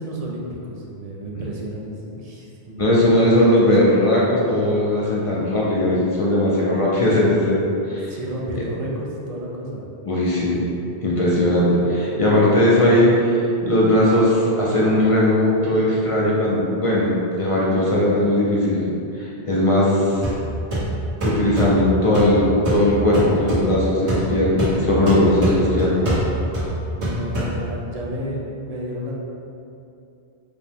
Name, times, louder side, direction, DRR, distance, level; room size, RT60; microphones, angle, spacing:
voice 1, 0.0-3.6 8.1-9.8 26.9-29.1, equal, 50° right, -3 dB, 0.5 m, -31 dB
voice 2, 2.8-7.6 7.9-8.1 8.5-8.6 10.0-10.6 11.0-18.9 19.1-20.1 21.2-26.1, left 1 dB, 40° left, -6 dB, 0.5 m, -18 dB
sound 1, 20.2-28.0, right 1 dB, 75° right, 1.7 m, -26 dB
5.0 x 2.2 x 3.4 m, 2.7 s
omnidirectional pair, 1.1 m